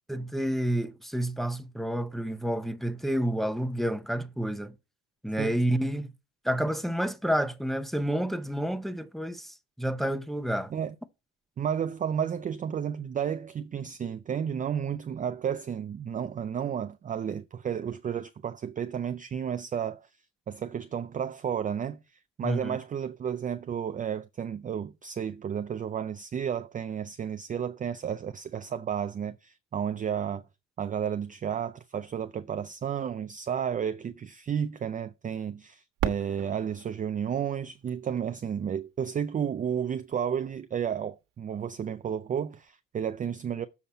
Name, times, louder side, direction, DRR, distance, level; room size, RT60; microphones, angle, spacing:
voice 1, 0.1-4.7 5.2-6.1 6.4-10.7 22.4-22.8, right 1 dB, ahead, 0.8 m, -29 dB
voice 2, 11.6-20.1 20.5-22.0 22.4-30.4 30.8-43.7, right 8 dB, 25° right, 0.4 m, -32 dB
Fireworks, 36.0-38.7 39.4-39.5 40.2-40.7 42.6-42.7, right 10 dB, 60° right, 1.5 m, -37 dB
7.1 x 5.7 x 4.2 m
supercardioid pair, 90°, 37 cm